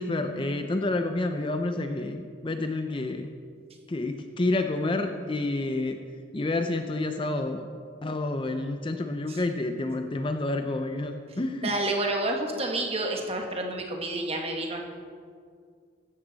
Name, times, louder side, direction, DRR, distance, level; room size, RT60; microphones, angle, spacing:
voice 1, 0.0-3.3 3.9-6.0 6.3-7.7 8.0-11.7, left 2 dB, 25° left, 6 dB, 0.5 m, -29 dB
voice 2, 11.6-14.8, right 2 dB, 30° right, 2 dB, 1.4 m, -29 dB
15.0 x 12.5 x 4.1 m, 2.2 s
head